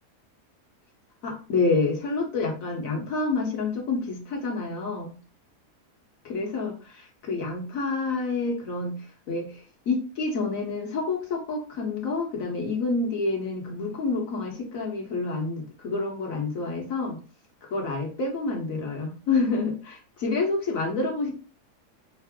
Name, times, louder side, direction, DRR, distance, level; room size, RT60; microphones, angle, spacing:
voice 1, 1.2-5.1 6.2-17.2 17.6-21.3, left 3 dB, 60° left, 0 dB, 1.4 m, -28 dB
5.7 x 2.0 x 3.5 m, 0.36 s
omnidirectional pair, 1.7 m